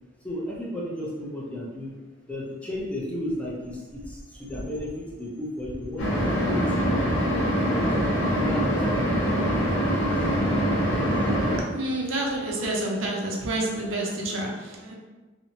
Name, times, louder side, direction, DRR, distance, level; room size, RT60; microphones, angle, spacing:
voice 1, 0.2-1.9 2.3-6.6 6.9-7.9 8.4-10.2, left 1 dB, 5° left, -5 dB, 0.4 m, -34 dB
sound 1, 6.0-11.6, equal, 70° left, 0.6 m, -24 dB
voice 2, 11.6-14.9, right 1 dB, 80° right, -1 dB, 0.5 m, -29 dB
2.8 x 2.1 x 2.6 m, 1.2 s
head